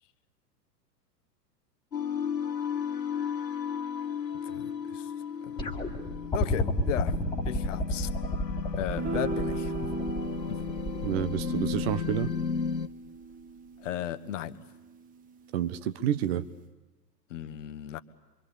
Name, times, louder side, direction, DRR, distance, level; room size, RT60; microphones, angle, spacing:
sound 1, 1.9-12.9, left 7 dB, 85° left, 1.0 m, -34 dB
voice 1, 4.4-5.1 5.4-5.6 6.3-7.2 7.4-8.1 8.8-9.9 10.5-10.6 13.8-14.6 17.3-18.0, left 11 dB, 45° left, 11 dB, 1.3 m, -35 dB
sound 2, 5.6-12.7 13.9-14.0, left 1 dB, 10° left, 2.1 m, -31 dB
sound 3, 8.9-15.4, right 5 dB, 15° right, 1.0 m, -38 dB
voice 2, 11.0-12.3 15.5-16.4, right 11 dB, 40° right, 12 dB, 1.2 m, -29 dB
26.5 x 24.0 x 8.6 m, 1.1 s
figure-of-eight pair, 105°, 50 cm